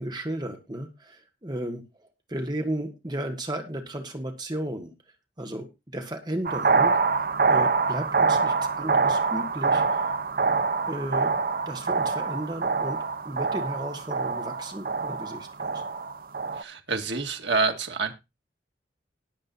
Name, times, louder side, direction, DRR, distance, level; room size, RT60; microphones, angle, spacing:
voice 1, 0.0-1.8 2.3-4.9 5.4-5.7 5.9-10.1 10.9-11.3 11.6-13.0 13.2-15.8, right 1 dB, 25° right, 4 dB, 1.7 m, -34 dB
sound 1, 6.4-16.6, right 4 dB, 50° right, 0.7 m, -25 dB
voice 2, 16.5-18.1, right 4 dB, 80° right, 4 dB, 2.0 m, -27 dB
19.5 x 7.7 x 2.7 m, 0.25 s
head